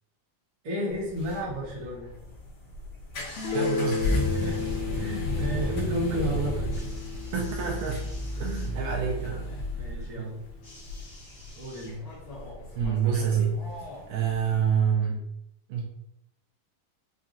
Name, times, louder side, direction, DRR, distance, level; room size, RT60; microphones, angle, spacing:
voice 1, 0.6-2.1 4.3-4.6 4.9-6.7 9.7-10.4 11.5-12.0, equal, 50° right, -8 dB, 1.7 m, -32 dB
sound 1, 0.9-14.8, left 1 dB, 60° left, 1.6 m, -34 dB
sound 2, 3.1-4.8 6.7-8.7 10.6-12.3 13.3-13.4, left 1 dB, 45° left, 1.4 m, -51 dB
Guitar, 3.4-8.9, left 5 dB, 80° left, 1.7 m, -34 dB
voice 2, 3.5-4.3 7.3-8.0 8.3-9.5 10.2-10.3 12.8-13.6 14.1-15.3 15.7-15.8, right 7 dB, 80° right, -2 dB, 2.0 m, -27 dB
5.7 x 2.3 x 2.7 m, 0.79 s
omnidirectional pair, 4.0 m